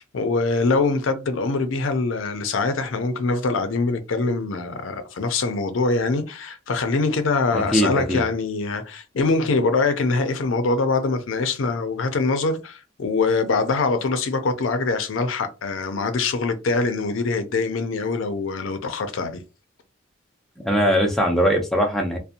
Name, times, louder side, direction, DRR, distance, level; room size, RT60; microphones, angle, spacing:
voice 1, 0.0-19.4, left 3 dB, 80° left, 0.5 m, -23 dB
voice 2, 7.5-8.2 20.6-22.2, equal, ahead, 0.5 m, -21 dB
2.5 x 2.1 x 2.7 m
head